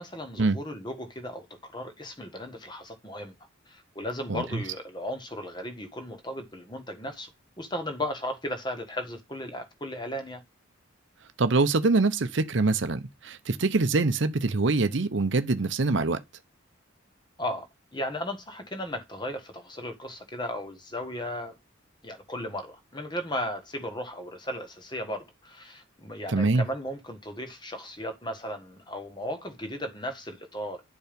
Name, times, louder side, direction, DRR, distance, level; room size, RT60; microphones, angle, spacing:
voice 1, 0.0-3.3 3.7-7.3 7.6-10.4 17.4-17.7 17.9-21.5 22.0-30.8, left 1 dB, 20° left, 1.5 m, -36 dB
voice 2, 4.3-4.6 11.4-16.2 26.3-26.7, right 3 dB, 65° right, 0.7 m, -24 dB
10.5 x 4.6 x 5.2 m
head